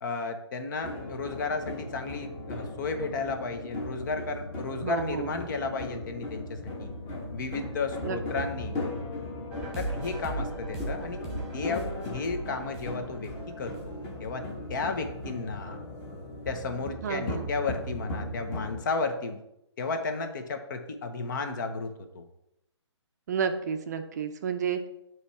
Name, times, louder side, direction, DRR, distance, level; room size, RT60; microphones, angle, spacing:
voice 1, 0.0-6.9 7.3-8.8 9.8-11.2 11.5-14.4 14.7-15.8 16.5-19.4 19.8-22.2, left 4 dB, 40° left, 6 dB, 0.9 m, -33 dB
sound 1, 0.8-18.8, left 2 dB, 20° left, 1.4 m, -38 dB
voice 2, 4.8-5.4 8.0-8.2 17.0-17.5 23.3-24.9, right 7 dB, 35° right, 7 dB, 0.5 m, -31 dB
sound 2, 9.5-14.5, right 2 dB, 5° right, 1.4 m, -38 dB
8.0 x 3.1 x 5.6 m, 0.82 s
hypercardioid pair, 150°, 15 cm